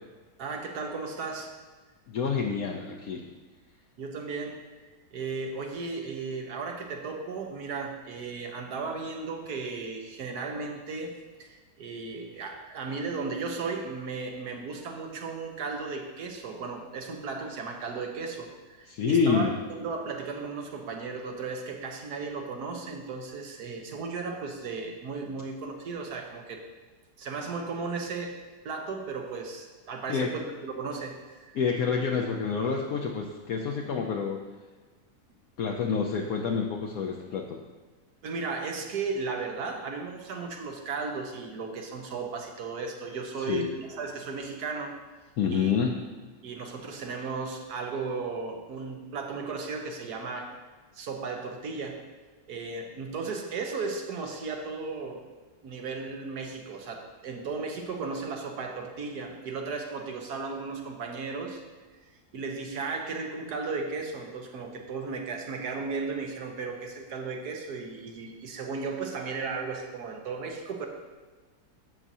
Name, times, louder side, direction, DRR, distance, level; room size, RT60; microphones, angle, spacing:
voice 1, 0.4-1.5 4.0-11.1 11.4-26.6 27.2-28.4 28.6-31.6 38.2-45.0 45.5-45.7 46.4-50.6 50.9-52.0 52.5-55.2 55.6-61.6 62.3-70.9, right 4 dB, 75° right, 3 dB, 1.6 m, -35 dB
voice 2, 2.1-3.2 18.9-19.5 30.1-30.3 31.5-34.4 35.6-37.6 43.5-43.7 45.4-45.9, left 6 dB, 70° left, 0 dB, 1.1 m, -27 dB
12.5 x 7.3 x 2.7 m, 1.3 s
omnidirectional pair, 1.7 m